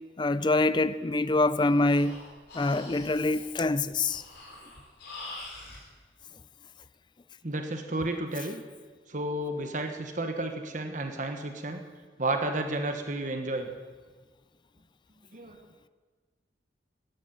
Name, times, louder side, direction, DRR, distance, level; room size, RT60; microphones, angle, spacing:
voice 1, 0.2-2.2 2.5-4.2, left 2 dB, 25° left, 0.4 m, -25 dB
Breathing, 1.5-5.9, left 2 dB, 65° left, 4.1 m, -45 dB
voice 2, 7.4-8.6 9.1-11.8 12.2-13.7 15.3-15.6, right 2 dB, 45° right, 1.3 m, -32 dB
13.5 x 10.5 x 8.9 m
head